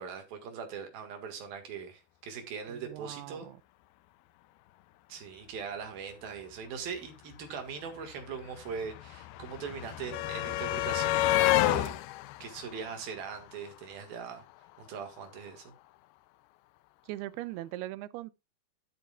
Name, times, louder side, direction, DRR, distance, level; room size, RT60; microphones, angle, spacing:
voice 1, 0.0-3.5 5.1-11.3 11.6-12.0 12.4-14.4 14.8-15.7, right 6 dB, 65° right, 3.3 m, -41 dB
voice 2, 2.7-3.6 17.0-18.3, right 16 dB, 80° right, 2.4 m, -40 dB
sound 1, 7.3-7.4 7.6-13.8 15.0-15.1 15.4-15.5, left 15 dB, 80° left, 2.3 m, -30 dB
12.0 x 8.0 x 2.4 m
omnidirectional pair, 4.9 m